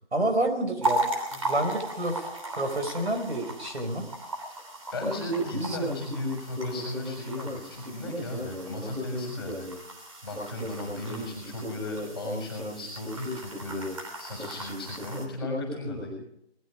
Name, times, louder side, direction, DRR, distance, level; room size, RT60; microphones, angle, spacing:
voice 1, 0.1-1.0 1.3-2.3 2.6-4.1 5.6-5.8, right 1 dB, 70° right, 5 dB, 4.6 m, -29 dB
sound 1, 0.8-15.3, right 2 dB, 30° right, 3.3 m, -37 dB
voice 2, 4.9-9.7 10.2-13.9 14.2-16.1, left 1 dB, ahead, -13 dB, 5.1 m, -33 dB
20.0 x 14.0 x 5.0 m, 0.77 s
figure-of-eight pair, 165°, 34 cm